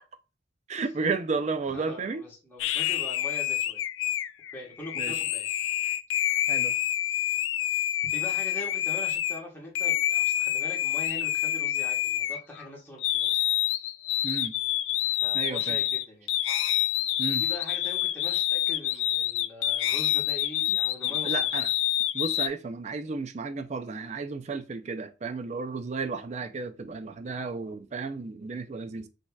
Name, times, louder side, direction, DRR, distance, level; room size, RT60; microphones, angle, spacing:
voice 1, 0.7-2.2 5.0-5.1 6.5-6.7 14.2-14.5 15.3-15.8 17.2-17.5 20.7-20.8 21.0-21.7 22.1-29.1, right 4 dB, 35° right, 0.4 m, -33 dB
voice 2, 1.7-3.8 4.5-5.5 8.0-13.4 15.1-16.5 17.4-21.6, left 1 dB, 10° left, 1.3 m, -42 dB
sound 1, 2.6-9.4 9.7-12.7 13.0-22.5, left 13 dB, 85° left, 0.3 m, -27 dB
6.2 x 2.8 x 2.3 m
head